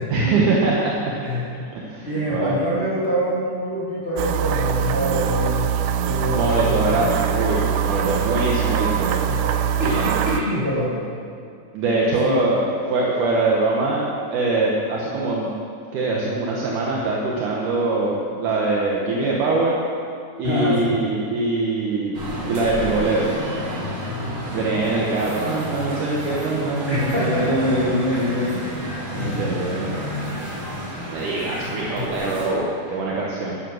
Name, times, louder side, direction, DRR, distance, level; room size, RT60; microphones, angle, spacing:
voice 1, 0.1-1.1 1.5-2.6 6.3-9.1 11.7-12.6 12.9-15.5 15.9-19.8 20.4-22.2 22.5-23.3 24.5-28.8 29.1-30.0 31.1-33.6, right 2 dB, 65° right, -4 dB, 2.1 m, -23 dB
voice 2, 1.2-1.6 2.0-5.7 6.1-7.0 9.2-9.4 9.8-10.9 12.2-12.4 16.2-16.3 20.4-20.9 24.1-24.7 26.9-27.6 28.1-28.3 29.1-29.6 31.9-32.0, equal, 25° left, -8 dB, 1.4 m, -25 dB
sound 1, 4.2-10.4, right 8 dB, 85° right, 2.6 m, -23 dB
sound 2, 22.1-32.5, equal, 40° right, 3.6 m, -30 dB
12.5 x 9.9 x 6.4 m, 2.4 s
omnidirectional pair, 5.1 m